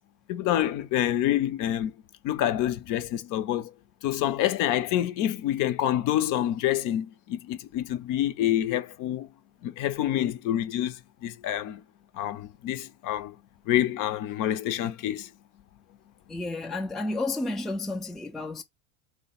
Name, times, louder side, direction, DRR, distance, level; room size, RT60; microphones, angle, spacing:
voice 1, 0.3-1.9 2.2-3.7 4.0-9.3 9.6-11.8 12.1-13.3 13.7-15.3, left 12 dB, 50° left, 0.6 m, -27 dB
voice 2, 16.3-18.6, left 2 dB, ahead, 0.4 m, -31 dB
3.3 x 2.1 x 4.1 m
hypercardioid pair, 95°, 40 cm